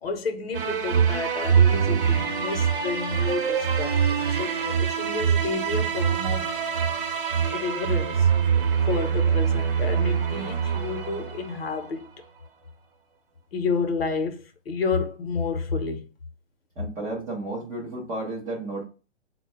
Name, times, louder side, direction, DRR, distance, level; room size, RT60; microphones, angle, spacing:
voice 1, 0.0-6.5 7.5-8.3 8.9-12.1 13.5-16.1, left 4 dB, 55° left, 0.8 m, -30 dB
Kojiro's Trips, 0.5-11.9, right 7 dB, 50° right, 0.8 m, -24 dB
voice 2, 16.8-18.8, right 2 dB, 10° right, 0.4 m, -32 dB
4.0 x 2.2 x 4.5 m
figure-of-eight pair, 115°, 35 cm